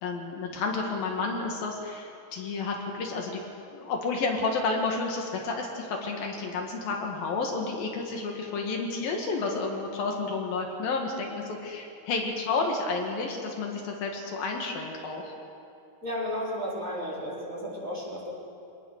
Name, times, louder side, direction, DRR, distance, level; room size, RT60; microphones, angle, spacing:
voice 1, 0.0-3.4 3.7-15.3, left 3 dB, 70° left, 1 dB, 3.6 m, -31 dB
voice 2, 16.0-18.3, equal, 20° right, -6 dB, 4.6 m, -33 dB
25.5 x 19.0 x 6.6 m, 2.6 s
omnidirectional pair, 4.4 m